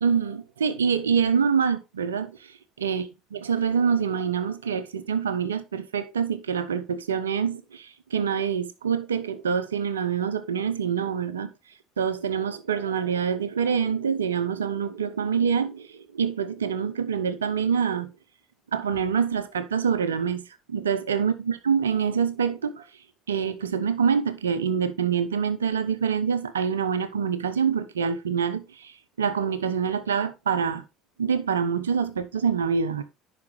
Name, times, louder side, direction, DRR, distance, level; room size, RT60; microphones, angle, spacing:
voice 1, 0.0-2.5 2.8-3.0 3.3-11.5 12.0-18.1 18.7-20.4 20.7-22.8 23.3-30.8 31.2-33.0, right 7 dB, 75° right, 0.7 m, -26 dB
10.5 x 4.9 x 3.2 m
figure-of-eight pair, 65°, 0 cm